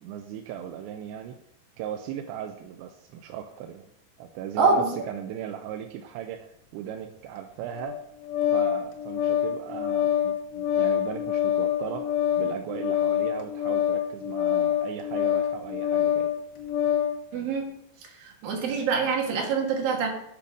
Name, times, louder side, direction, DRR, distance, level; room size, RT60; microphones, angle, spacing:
voice 1, 0.0-1.4 1.8-3.9 4.2-8.0 8.5-16.3, right 9 dB, 85° right, 4 dB, 2.9 m, -37 dB
voice 2, 4.6-4.9 17.3-17.7 18.2-20.1, right 4 dB, 60° right, 1 dB, 2.9 m, -25 dB
Organ, 7.8-17.2, left 10 dB, 75° left, 3.3 m, -26 dB
8.5 x 8.4 x 5.0 m, 0.76 s
omnidirectional pair, 5.2 m